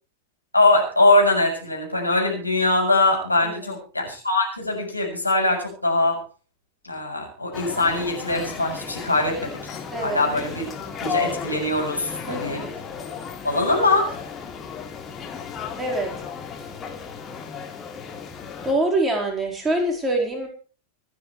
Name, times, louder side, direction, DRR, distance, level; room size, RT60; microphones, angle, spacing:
voice 1, 0.5-6.2 6.8-9.5 10.0-10.7 11.0-12.7 13.4-14.1, left 2 dB, 85° left, 0 dB, 7.4 m, -22 dB
voice 2, 3.4-3.7 9.9-10.2 12.3-12.7 15.8-16.1 18.6-20.5, right 1 dB, 15° right, 0 dB, 4.7 m, -25 dB
sound 1, 7.5-18.7, left 7 dB, 25° left, 3.4 m, -34 dB
26.0 x 9.7 x 3.4 m, 0.36 s
figure-of-eight pair, 90°, 0 cm